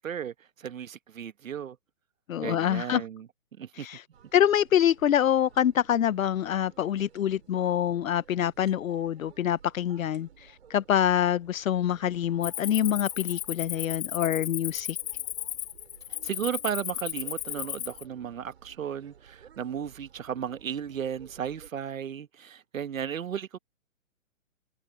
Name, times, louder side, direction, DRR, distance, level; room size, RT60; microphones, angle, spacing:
voice 1, 0.0-1.8 2.4-3.3 3.6-3.9 16.2-23.6, right 8 dB, 80° right, 1.3 m, -35 dB
voice 2, 2.3-3.0 3.8-4.0 4.3-15.0, left 10 dB, 80° left, 0.7 m, -26 dB
sound 1, 4.1-21.7, right 8 dB, 55° right, 6.9 m, -55 dB
Cricket, 12.4-18.0, left 12 dB, 30° left, 2.5 m, -35 dB
hypercardioid pair, 175°, 40 cm